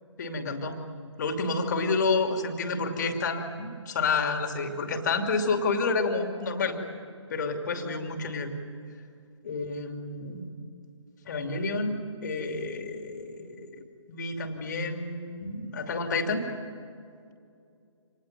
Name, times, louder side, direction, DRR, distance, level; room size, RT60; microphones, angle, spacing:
voice 1, 0.2-0.8 1.2-6.8 7.3-8.5 9.4-10.5 11.3-16.5, left 3 dB, 35° left, 5 dB, 2.7 m, -29 dB
27.0 x 20.0 x 9.4 m, 2.5 s
figure-of-eight pair, 140°, 16 cm